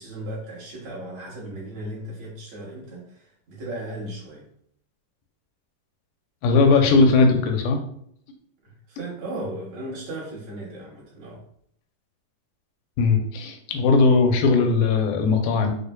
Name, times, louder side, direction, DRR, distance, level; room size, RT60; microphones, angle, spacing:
voice 1, 0.0-4.5 8.6-11.4, right 1 dB, 60° right, -6 dB, 2.0 m, -36 dB
voice 2, 6.4-7.8 13.0-15.7, left 3 dB, 85° left, 3 dB, 2.3 m, -18 dB
6.3 x 2.3 x 2.2 m, 0.69 s
omnidirectional pair, 3.9 m